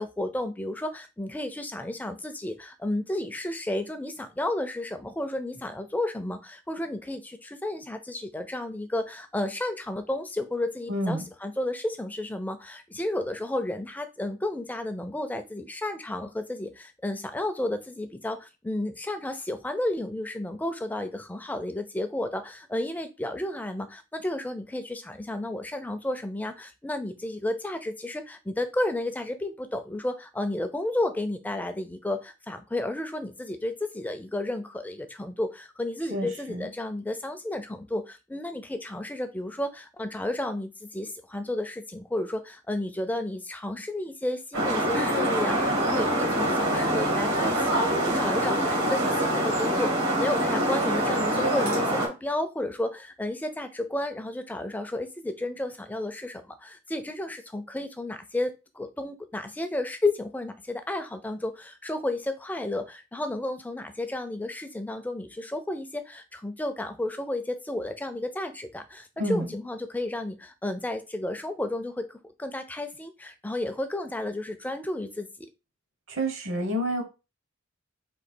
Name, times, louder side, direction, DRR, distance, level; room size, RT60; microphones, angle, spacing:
voice 1, 0.0-75.5, left 1 dB, 10° left, 8 dB, 0.4 m, -32 dB
voice 2, 10.9-11.3 36.1-36.7 69.2-69.5 76.1-77.0, equal, 60° right, 5 dB, 0.9 m, -29 dB
sound 1, 44.5-52.1, right 1 dB, 85° right, 1.9 m, -25 dB
3.9 x 2.8 x 4.3 m, 0.28 s
head